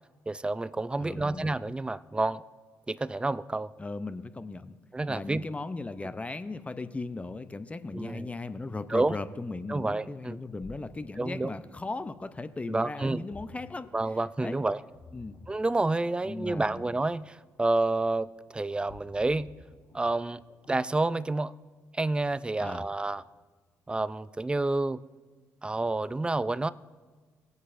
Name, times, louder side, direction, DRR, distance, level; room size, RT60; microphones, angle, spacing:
voice 1, 0.3-2.4 2.9-3.7 4.9-5.4 7.9-8.3 8.9-9.2 9.7-10.4 11.2-11.5 12.7-13.2 13.9-14.8 15.5-19.5 19.9-20.4 20.7-21.5 21.9-23.2 23.9-25.0 25.6-26.7, right 2 dB, 15° right, 16 dB, 0.4 m, -29 dB
voice 2, 1.0-1.5 3.8-4.8 5.1-13.9 14.4-14.6 15.1-15.4 16.2-16.9 22.6-22.9, left 3 dB, 20° left, 12 dB, 0.6 m, -37 dB
Ocean, 10.3-20.9, left 3 dB, 65° left, 1.0 m, -54 dB
18.0 x 8.1 x 2.6 m, 1.4 s
supercardioid pair, 60°, 6 cm